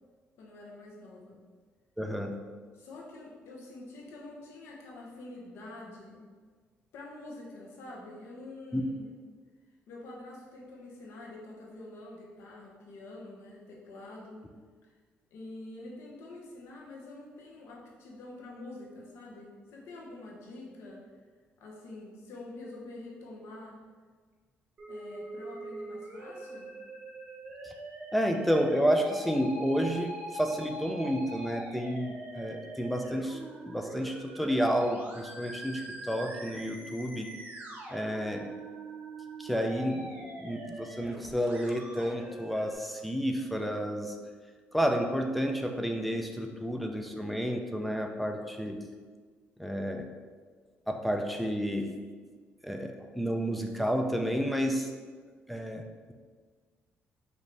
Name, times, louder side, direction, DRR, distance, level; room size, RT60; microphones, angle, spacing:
voice 1, 0.4-1.4 2.7-6.3 6.9-9.1 9.9-14.4 14.8-14.9 15.3-21.1 21.6-23.8 24.9-26.7, left 2 dB, 90° left, -2 dB, 0.9 m, -46 dB
voice 2, 2.0-2.4 8.7-8.8 27.6-27.7 28.1-37.3 37.9-38.5 39.4-44.2 44.7-48.8 49.6-50.1 50.9-51.9 52.6-54.9 55.5-56.1, equal, ahead, 3 dB, 0.4 m, -30 dB
Musical instrument, 24.8-42.7, right 2 dB, 35° right, 0.8 m, -43 dB
5.0 x 2.7 x 3.3 m, 1.5 s
cardioid pair, 140°, 4 cm